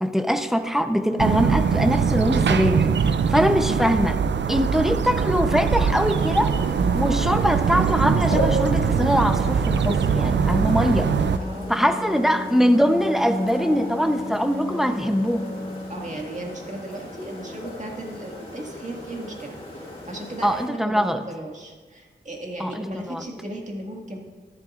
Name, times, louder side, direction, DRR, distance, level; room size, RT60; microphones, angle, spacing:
voice 1, 0.0-4.2 4.5-6.5 6.9-11.1 11.7-15.5 20.4-21.2 22.6-23.2, equal, ahead, 8 dB, 0.7 m, -22 dB
sound 1, 1.2-11.4, right 6 dB, 85° right, 0.4 m, -22 dB
sound 2, 6.0-20.7, equal, 35° left, 2.7 m, -36 dB
Wind instrument woodwind instrument, 10.1-16.2, left 2 dB, 60° left, 1.6 m, -35 dB
voice 2, 11.4-12.0 15.9-24.2, right 1 dB, 40° right, 0 dB, 1.9 m, -36 dB
13.0 x 11.0 x 2.5 m, 1.4 s
cardioid pair, 50°, 18 cm